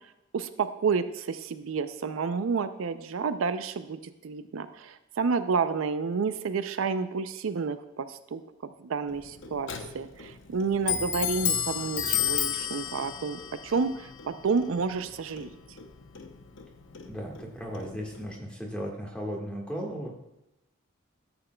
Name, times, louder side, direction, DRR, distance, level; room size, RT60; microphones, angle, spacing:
voice 1, 0.3-9.7 9.9-15.5, right 5 dB, 80° right, 11 dB, 0.5 m, -30 dB
Clock, 9.1-18.4, left 9 dB, 65° left, 0.7 m, -34 dB
voice 2, 17.1-20.1, equal, 5° left, -1 dB, 1.5 m, -36 dB
13.0 x 7.9 x 2.2 m, 0.90 s
head